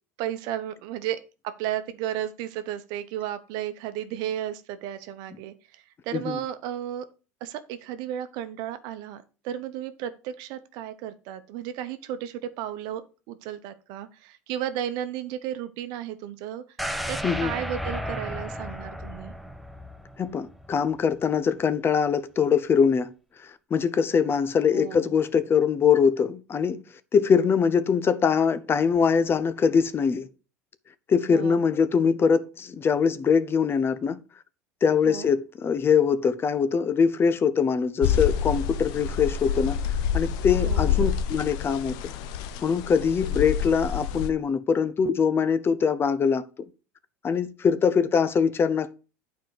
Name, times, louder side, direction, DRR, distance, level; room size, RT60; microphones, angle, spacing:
voice 1, 0.2-7.1 7.4-16.6 17.1-19.3 24.7-25.1 31.3-31.6 35.0-35.3 40.6-41.1, right 11 dB, 60° right, 0.9 m, -34 dB
sound 1, 16.8-20.8 21.1-21.2, equal, ahead, 0.9 m, -33 dB
voice 2, 20.2-23.1 23.7-26.8 27.1-30.3 31.1-34.2 34.8-41.9 42.6-46.4 47.2-48.9, left 6 dB, 30° left, 0.6 m, -23 dB
sound 2, 38.0-44.3, left 8 dB, 60° left, 0.7 m, -27 dB
9.1 x 4.6 x 4.7 m
hypercardioid pair, 85°, 8 cm